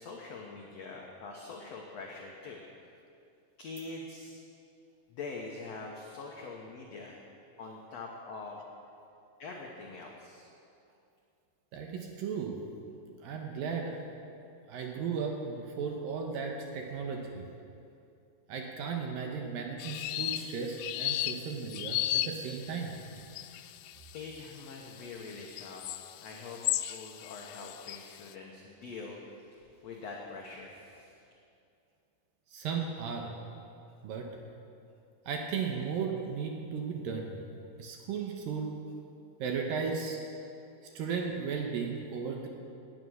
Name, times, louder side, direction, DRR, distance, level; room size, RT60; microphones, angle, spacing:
voice 1, 0.0-2.6 3.6-4.4 5.1-7.2 7.6-8.6 9.4-10.5 23.3-31.3, left 3 dB, 70° left, -1 dB, 1.5 m, -44 dB
voice 2, 11.7-12.7 13.2-14.0 14.7-17.5 18.5-23.0 32.5-33.5 34.0-34.4 35.3-37.4 37.8-38.8 39.4-40.2 40.9-42.5, right 5 dB, 70° right, 2 dB, 2.5 m, -35 dB
sound 1, 19.8-28.2, left 14 dB, 90° left, 2.7 m, -35 dB
18.5 x 9.5 x 6.4 m, 2.6 s
omnidirectional pair, 4.7 m